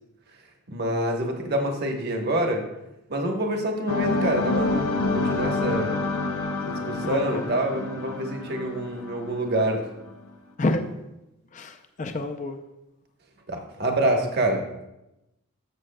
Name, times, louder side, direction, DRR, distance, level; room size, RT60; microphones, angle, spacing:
voice 1, 0.7-2.6 3.1-6.0 6.6-9.8 13.5-14.6, right 1 dB, 45° right, 3 dB, 1.1 m, -26 dB
sound 1, 3.9-9.8, left 3 dB, 90° left, 0.8 m, -28 dB
voice 2, 7.0-7.5 10.6-10.9 11.5-12.6, left 2 dB, 35° left, 7 dB, 0.5 m, -28 dB
12.5 x 7.3 x 2.2 m, 0.93 s
head